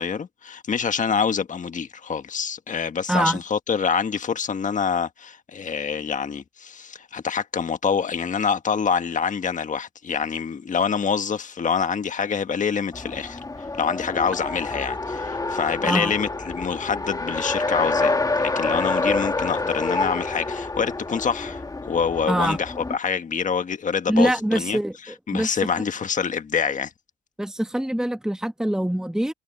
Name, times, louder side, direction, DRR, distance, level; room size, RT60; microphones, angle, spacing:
voice 1, 0.0-26.9, left 6 dB, 40° left, 1.5 m, -26 dB
voice 2, 3.1-3.4 15.8-16.1 22.3-22.6 24.1-24.9 25.3-25.6 27.4-29.3, right 1 dB, 5° right, 1.4 m, -23 dB
Race car auto racing, 12.9-23.0, left 3 dB, 20° left, 1.5 m, -27 dB
cardioid pair, 90°, 20 cm